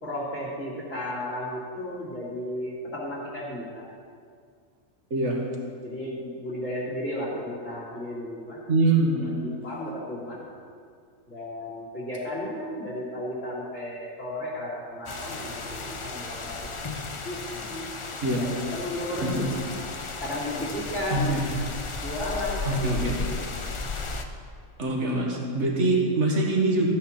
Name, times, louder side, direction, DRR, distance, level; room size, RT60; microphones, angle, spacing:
voice 1, 0.0-3.8 5.8-8.6 9.0-10.4 11.3-16.7 17.2-17.8 18.2-19.5 20.2-21.3 22.0-23.3, left 1 dB, 65° left, -8 dB, 2.8 m, -34 dB
voice 2, 8.7-9.5 18.2-18.4 19.2-19.4 21.1-21.4 22.6-23.2 24.8-26.9, right 2 dB, 60° right, 0 dB, 1.9 m, -24 dB
sound 1, 15.1-24.2, left 3 dB, 35° left, 0.5 m, -34 dB
13.0 x 9.4 x 4.3 m, 2.2 s
omnidirectional pair, 1.4 m